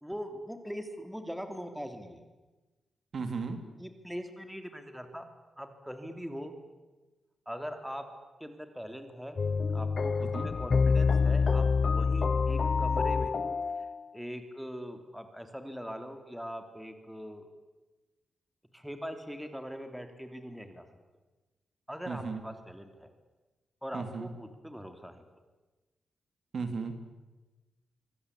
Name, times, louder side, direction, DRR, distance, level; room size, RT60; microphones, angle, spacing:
voice 1, 0.0-2.2 3.8-5.2 5.6-6.5 7.4-8.1 8.4-9.4 9.7-13.3 14.1-17.5 18.7-20.9 21.9-23.1 23.8-25.2, equal, ahead, 6 dB, 3.3 m, -41 dB
voice 2, 3.1-3.6 10.2-10.5 22.1-22.4 23.9-24.3 26.5-26.9, right 4 dB, 55° right, 7 dB, 3.2 m, -35 dB
sound 1, 9.4-14.1, left 5 dB, 45° left, 0.9 m, -27 dB
25.0 x 24.5 x 8.5 m, 1.2 s
cardioid pair, 100°, 0 cm